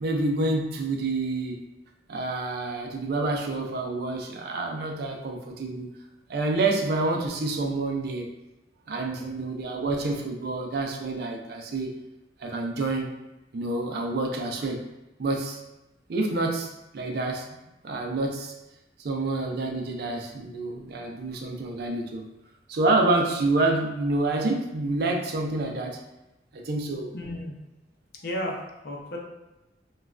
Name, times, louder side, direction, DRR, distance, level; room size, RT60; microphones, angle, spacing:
voice 1, 0.0-1.6 2.1-5.9 6.3-8.3 8.9-11.9 12.4-13.1 13.5-14.8 15.2-15.6 16.1-17.5 17.8-18.5 19.0-22.3 22.7-26.0 26.5-27.1, right 2 dB, 60° right, 2 dB, 0.4 m, -28 dB
voice 2, 9.2-9.8 27.1-27.5 28.2-29.2, equal, 60° left, -1 dB, 0.6 m, -34 dB
3.0 x 2.2 x 2.4 m, 0.97 s
head